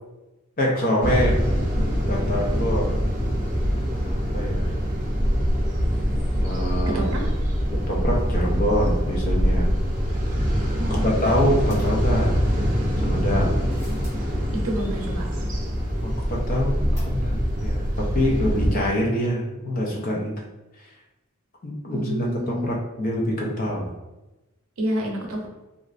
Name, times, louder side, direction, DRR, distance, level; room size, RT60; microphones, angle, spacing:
voice 1, 0.6-1.4 2.1-3.0 4.0-4.7 6.4-7.1 7.7-9.7 10.9-12.4 13.0-13.6 16.0-20.3 21.6-23.9, equal, 40° left, -1 dB, 0.5 m, -25 dB
sound 1, 1.0-18.7, equal, 35° right, 0.6 m, -24 dB
voice 2, 10.8-11.2 14.6-15.4 21.9-22.7 24.8-25.5, equal, 75° right, 0 dB, 0.7 m, -29 dB
sound 2, 11.7-12.7 13.4-14.3 17.0-17.6 17.9-18.0 18.2-18.3, equal, 15° left, 1.0 m, -38 dB
3.1 x 2.5 x 2.5 m, 1.0 s
head